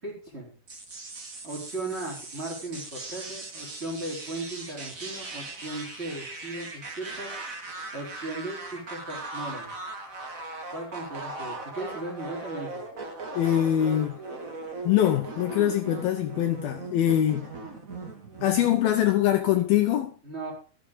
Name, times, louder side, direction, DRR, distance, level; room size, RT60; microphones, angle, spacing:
voice 1, 0.0-0.5 1.4-7.3 7.9-9.7 10.7-12.8 20.2-20.5, right 2 dB, 15° right, 4.1 m, -37 dB
sound 1, 0.7-19.1, right 3 dB, 80° right, 0.7 m, -39 dB
voice 2, 13.3-14.2 14.8-17.5 18.4-20.1, left 11 dB, 75° left, 2.5 m, -23 dB
14.0 x 7.4 x 5.2 m
omnidirectional pair, 4.8 m